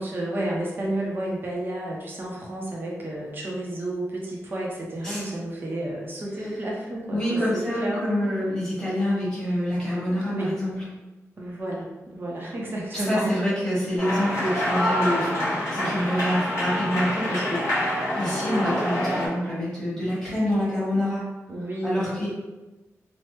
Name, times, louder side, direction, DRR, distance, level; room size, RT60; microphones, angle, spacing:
voice 1, 0.0-8.3 10.3-10.6 11.4-13.3 15.7-16.0 21.5-22.3, right 1 dB, 40° right, -3 dB, 0.6 m, -31 dB
voice 2, 7.1-10.7 12.9-21.2 21.8-22.3, equal, 15° left, -9 dB, 1.4 m, -27 dB
sound 1, 14.0-19.3, left 1 dB, 60° left, 1.4 m, -26 dB
3.2 x 2.0 x 3.0 m, 1.1 s
wide cardioid pair, 140°, 6 cm